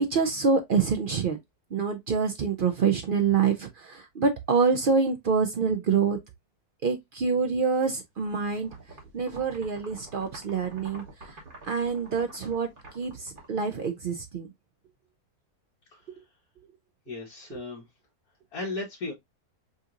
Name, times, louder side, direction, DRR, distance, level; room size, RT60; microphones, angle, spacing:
voice 1, 0.0-1.4 1.7-6.2 6.8-8.7 9.1-14.5, right 5 dB, 70° right, 0.5 m, -26 dB
sound 1, 8.2-14.3, right 2 dB, 35° right, 1.3 m, -48 dB
voice 2, 17.1-17.9 18.5-19.1, left 3 dB, 70° left, 1.5 m, -36 dB
5.3 x 2.9 x 2.4 m
omnidirectional pair, 1.6 m